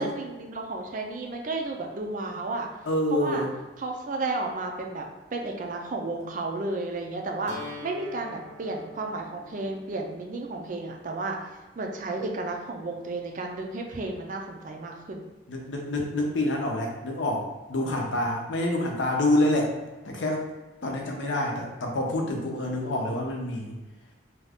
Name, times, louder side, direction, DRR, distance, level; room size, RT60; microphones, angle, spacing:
voice 1, 0.0-2.7 3.1-3.5 3.8-5.0 5.3-7.6 7.8-15.2, right 2 dB, 45° right, 2 dB, 0.4 m, -32 dB
voice 2, 2.8-3.5 15.5-19.7 20.0-20.5 20.8-23.7, left 1 dB, 75° left, 1 dB, 0.6 m, -27 dB
sound 1, 7.5-13.4, left 2 dB, 75° right, 0.8 m, -47 dB
2.7 x 2.3 x 3.4 m, 1.2 s
head